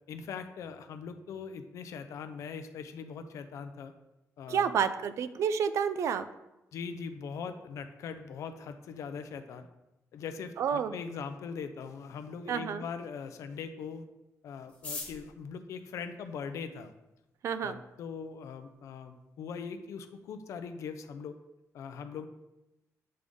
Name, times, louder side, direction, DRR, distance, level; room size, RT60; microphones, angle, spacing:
voice 1, 0.1-3.9 4.4-4.7 6.7-9.7 10.1-14.1 14.4-16.9 17.6-21.4 21.7-22.3, left 6 dB, 65° left, 8 dB, 0.5 m, -41 dB
voice 2, 4.5-6.3 10.6-10.9 12.5-12.8 17.4-17.8, right 7 dB, 60° right, 12 dB, 0.3 m, -29 dB
sound 1, 14.7-16.9 17.7-17.8 18.0-18.1 18.4-18.9 19.2-19.3 19.5-19.9 20.2-20.4 20.8-21.1, left 3 dB, 25° left, 1.3 m, -44 dB
7.5 x 3.6 x 3.8 m, 0.95 s
wide cardioid pair, 175°, 6 cm